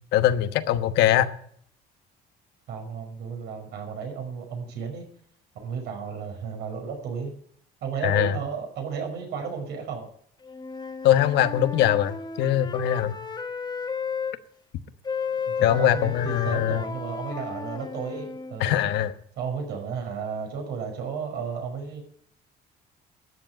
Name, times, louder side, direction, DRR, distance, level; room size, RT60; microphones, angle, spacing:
voice 1, 0.1-1.3 8.0-8.4 11.0-13.1 15.6-16.8 18.6-19.1, left 11 dB, 85° left, 11 dB, 1.1 m, -22 dB
voice 2, 2.7-5.1 5.6-7.3 7.8-10.1 15.5-18.8 19.4-22.0, right 6 dB, 80° right, 3 dB, 5.5 m, -33 dB
Wind instrument woodwind instrument, 10.4-14.4 15.0-18.6, left 5 dB, 25° left, 1.3 m, -34 dB
12.5 x 8.0 x 8.8 m, 0.64 s
cardioid pair, 110°, 17 cm